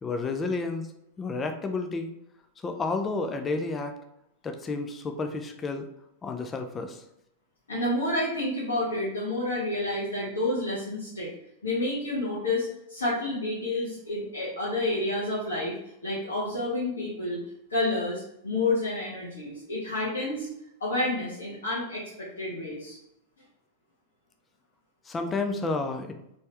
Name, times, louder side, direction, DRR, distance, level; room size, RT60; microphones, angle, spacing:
voice 1, 0.0-0.9 1.2-2.1 2.6-4.0 4.4-5.9 6.2-7.0 25.1-26.2, left 3 dB, 20° left, 6 dB, 0.5 m, -31 dB
voice 2, 7.7-11.3 11.6-15.7 16.0-17.4 17.7-20.5 20.8-23.0, left 2 dB, 70° left, -8 dB, 1.4 m, -29 dB
4.1 x 3.4 x 3.3 m, 0.79 s
figure-of-eight pair, 90°, 0 cm